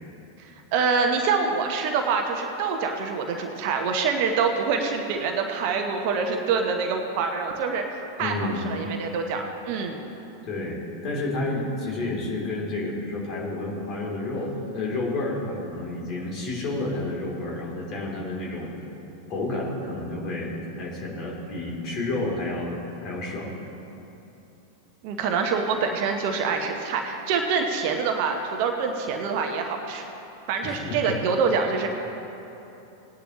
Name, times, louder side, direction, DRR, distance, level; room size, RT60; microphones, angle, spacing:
voice 1, 0.7-7.8 8.2-10.0 25.0-30.0 30.5-31.9, right 5 dB, 45° right, 3 dB, 1.0 m, -25 dB
voice 2, 8.2-8.6 10.4-18.7 19.3-23.5 30.6-31.1, left 2 dB, 35° left, -3 dB, 3.2 m, -30 dB
19.5 x 10.0 x 3.1 m, 3.0 s
figure-of-eight pair, 90°, 0 cm